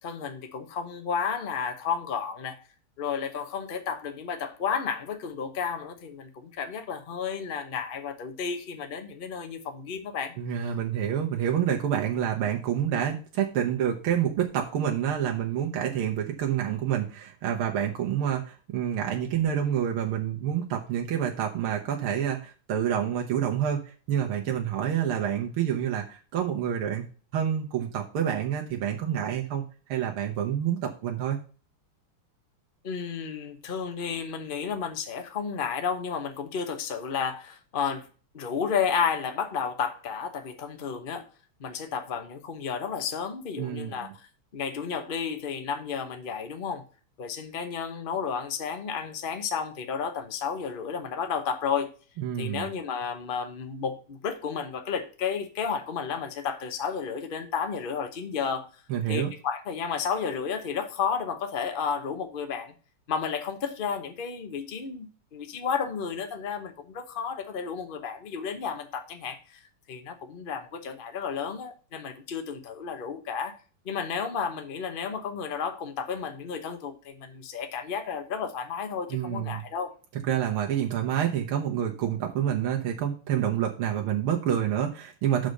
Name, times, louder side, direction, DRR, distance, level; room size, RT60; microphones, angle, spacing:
voice 1, 0.0-2.6 3.0-10.3 32.8-38.1 38.3-41.3 41.6-44.3 44.5-46.8 47.2-51.9 52.4-58.7 59.1-62.7 63.1-69.6 69.9-73.5 73.8-79.9, left 6 dB, 40° left, 7 dB, 0.7 m, -32 dB
voice 2, 10.4-27.0 27.3-29.6 29.9-31.4 43.6-44.1 52.2-52.7 58.9-59.3 79.1-79.6 80.3-85.5, right 9 dB, 75° right, 1 dB, 1.8 m, -28 dB
6.4 x 5.0 x 6.5 m, 0.37 s
omnidirectional pair, 2.4 m